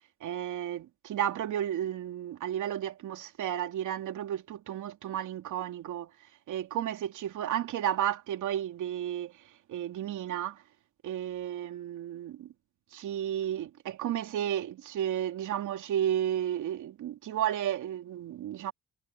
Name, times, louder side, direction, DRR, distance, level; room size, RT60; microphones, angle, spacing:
voice 1, 0.2-6.1 6.5-9.3 9.7-10.6 11.0-12.5 12.9-18.7, right 11 dB, 80° right, 2.8 m, -32 dB
cardioid pair, 90°, 30 cm